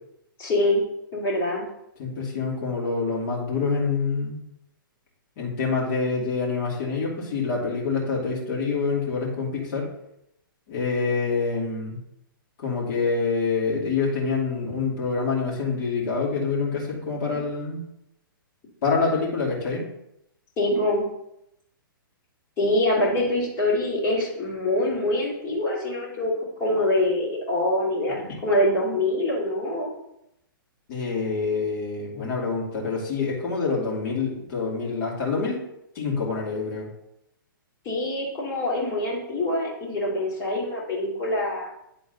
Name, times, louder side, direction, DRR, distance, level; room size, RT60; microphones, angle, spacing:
voice 1, 0.4-0.8 1.1-1.6 20.6-21.0 22.6-26.3 26.6-29.9 37.8-41.7, left 1 dB, 20° left, -6 dB, 2.9 m, -24 dB
voice 2, 2.0-4.4 5.4-9.9 10.7-12.0 12.6-17.8 18.8-19.8 28.2-28.3 30.9-35.6 35.9-36.9, left 4 dB, 45° left, -4 dB, 2.5 m, -26 dB
9.6 x 3.8 x 4.0 m, 0.81 s
hypercardioid pair, 145°, 12 cm